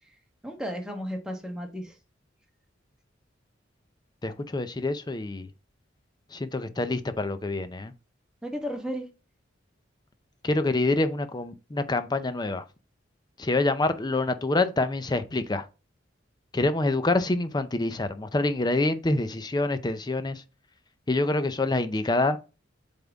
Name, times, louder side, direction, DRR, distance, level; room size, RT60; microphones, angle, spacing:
voice 1, 0.4-1.9 8.4-9.1, equal, 5° right, 1.2 m, -34 dB
voice 2, 4.2-5.5 6.3-7.9 10.4-12.7 13.4-15.7 16.5-20.4 21.1-22.4, left 2 dB, 20° left, 0.6 m, -26 dB
7.7 x 3.6 x 3.5 m
head